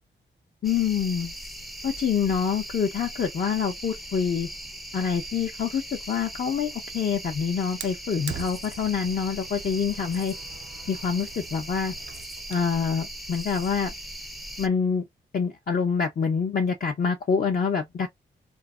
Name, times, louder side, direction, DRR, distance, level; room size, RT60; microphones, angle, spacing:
voice 1, 0.6-1.3 1.8-4.5 4.9-10.3 10.9-11.9 12.5-13.9 14.6-15.0 15.3-18.1, left 6 dB, 50° left, 0.5 m, -26 dB
sound 1, 0.6-14.7, right 1 dB, ahead, 0.4 m, -39 dB
Fire, 7.8-12.8, right 10 dB, 75° right, 0.4 m, -43 dB
3.0 x 2.0 x 2.3 m
cardioid pair, 75°, 19 cm